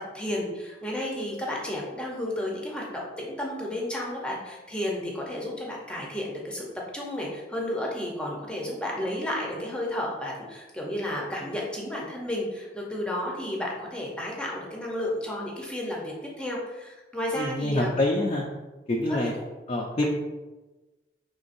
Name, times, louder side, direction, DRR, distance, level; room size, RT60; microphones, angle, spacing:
voice 1, 0.1-6.7 6.9-17.9 19.1-19.2, left 1 dB, 5° left, -3 dB, 0.7 m, -32 dB
voice 2, 17.3-18.4 18.9-19.3 19.7-20.1, left 1 dB, 35° left, -1 dB, 0.4 m, -26 dB
5.3 x 3.3 x 2.6 m, 1.2 s
head